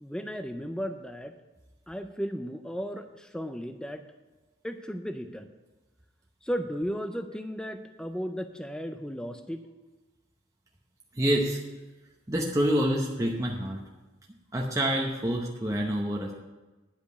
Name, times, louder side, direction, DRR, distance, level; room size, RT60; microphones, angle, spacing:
voice 1, 0.0-1.3 1.9-4.0 4.6-5.5 6.4-9.6, equal, 5° left, 7 dB, 0.4 m, -35 dB
voice 2, 11.2-11.6 12.3-13.8 14.5-16.3, equal, 15° right, -1 dB, 0.8 m, -27 dB
10.5 x 5.2 x 7.9 m, 1.2 s
head